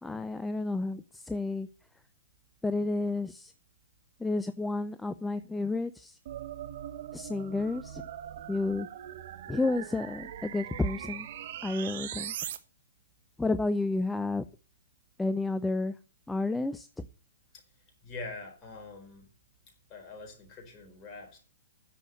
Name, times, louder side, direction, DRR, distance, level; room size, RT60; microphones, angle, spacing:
voice 1, 0.0-1.7 2.6-3.5 4.2-6.2 7.1-8.0 8.5-8.9 9.5-11.3 11.6-12.3 13.4-14.4 15.2-16.0 16.3-17.0, left 2 dB, 5° left, 0.6 m, -31 dB
sound 1, 6.3-12.6, right 10 dB, 55° right, 1.3 m, -41 dB
voice 2, 18.0-19.3 19.9-21.4, left 3 dB, 30° left, 4.3 m, -44 dB
10.0 x 7.0 x 7.8 m
figure-of-eight pair, 120°, 0 cm